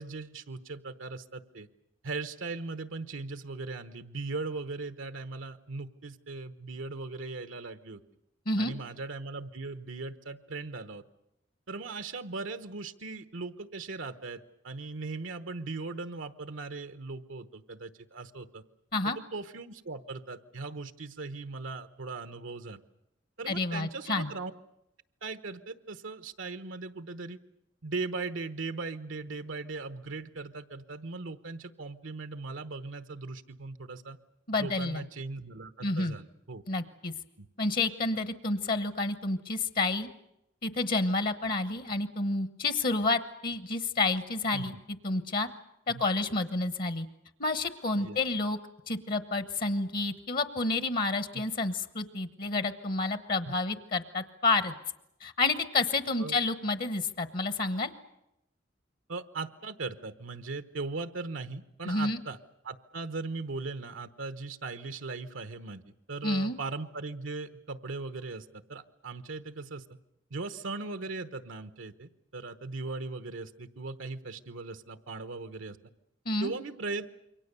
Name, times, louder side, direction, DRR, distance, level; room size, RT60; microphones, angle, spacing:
voice 1, 0.0-1.7 2.0-8.0 8.6-11.0 11.7-18.6 19.0-22.8 23.4-24.5 25.2-27.4 27.8-34.2 34.6-36.6 37.4-37.5 44.5-44.8 45.9-46.0 48.0-48.2 51.3-51.4 53.5-53.6 56.2-56.4 59.1-62.4 62.6-70.0 70.3-75.8 76.4-77.1, right 3 dB, 85° right, 10 dB, 1.0 m, -39 dB
voice 2, 23.5-24.3 34.5-35.0 35.8-36.2 36.7-37.1 37.6-40.1 40.6-44.7 45.0-45.5 45.9-47.1 47.4-48.6 48.9-54.7 55.2-57.9 61.8-62.2 66.2-66.6 76.2-76.5, left 3 dB, 50° left, 12 dB, 1.1 m, -29 dB
27.5 x 23.5 x 6.9 m, 0.83 s
head